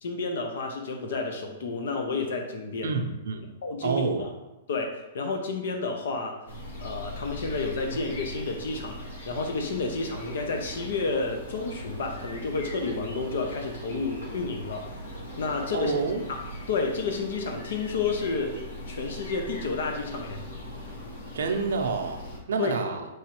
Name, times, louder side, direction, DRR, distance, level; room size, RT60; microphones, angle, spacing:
voice 1, 0.0-2.9 3.6-4.1 4.7-6.4 6.8-15.1 15.4-15.9 16.3-16.4 16.7-18.6 18.9-20.4 22.6-22.7, left 4 dB, 60° left, 3 dB, 0.5 m, -30 dB
voice 2, 2.8-3.5 3.8-4.3 15.7-16.3 21.3-23.1, right 4 dB, 85° right, 3 dB, 0.5 m, -28 dB
sound 1, 6.5-22.4, equal, 85° left, 1.0 m, -40 dB
4.7 x 3.1 x 2.9 m, 0.98 s
hypercardioid pair, 180°, 0 cm